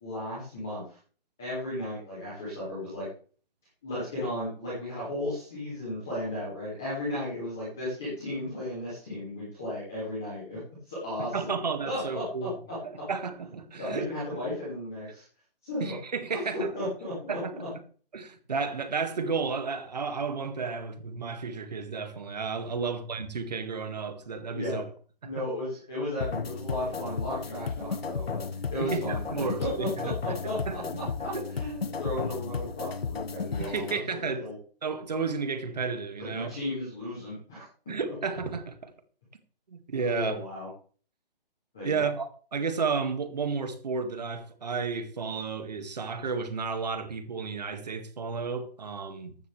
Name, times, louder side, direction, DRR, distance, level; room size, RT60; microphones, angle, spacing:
voice 1, 0.0-1.0 1.4-3.1 3.8-10.6 10.9-11.5 11.8-12.5 13.8-15.2 15.6-16.0 16.3-17.7 22.7-22.9 24.5-24.8 25.2-28.4 28.7-29.9 30.2-34.5 36.3-37.6 40.0-40.7 41.7-42.1, left 1 dB, 5° left, 0.7 m, -35 dB
voice 2, 11.3-12.5 12.8-14.1 15.8-16.7 17.3-17.6 18.1-24.8 25.2-25.5 28.8-30.1 30.4-30.8 31.3-31.5 33.6-34.5 34.8-36.5 37.9-38.9 39.7-40.4 41.8-49.4, right 5 dB, 45° right, 1.9 m, -32 dB
sound 1, 26.2-34.0, left 5 dB, 80° left, 1.2 m, -34 dB
15.0 x 12.0 x 3.3 m
hypercardioid pair, 175°, 30 cm